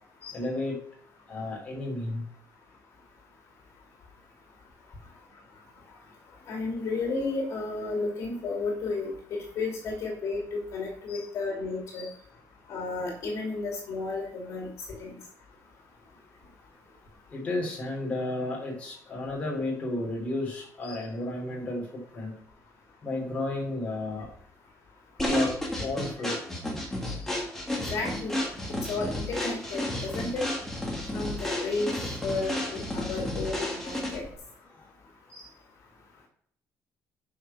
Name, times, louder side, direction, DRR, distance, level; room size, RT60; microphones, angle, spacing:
voice 1, 0.2-0.8 1.3-2.2 11.1-11.2 11.9-12.2 17.3-22.3 23.0-24.2 25.2-25.5 25.8-26.3 27.0-27.3 35.3-35.5, left 2 dB, 20° left, -3 dB, 3.4 m, -33 dB
voice 2, 6.5-12.1 12.7-14.7 15.0-15.2 27.9-28.3 28.9-30.4 31.1-31.9 32.2-34.2, left 3 dB, 55° left, 0 dB, 2.8 m, -32 dB
sound 1, 25.2-34.3, left 1 dB, 5° left, 2.2 m, -32 dB
9.4 x 5.8 x 5.7 m, 0.62 s
cardioid pair, 160°, 6 cm